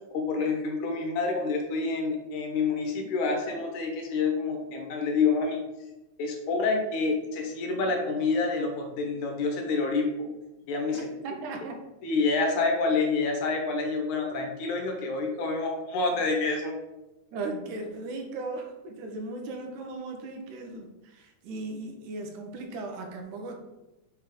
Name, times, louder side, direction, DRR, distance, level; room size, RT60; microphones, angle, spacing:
voice 1, 0.1-5.6 6.2-10.1 10.7-11.0 12.0-16.7, left 4 dB, 75° left, 2 dB, 2.4 m, -27 dB
voice 2, 10.9-11.8 17.3-23.6, right 2 dB, 80° right, 2 dB, 2.4 m, -37 dB
6.9 x 3.6 x 5.0 m, 0.98 s
omnidirectional pair, 3.6 m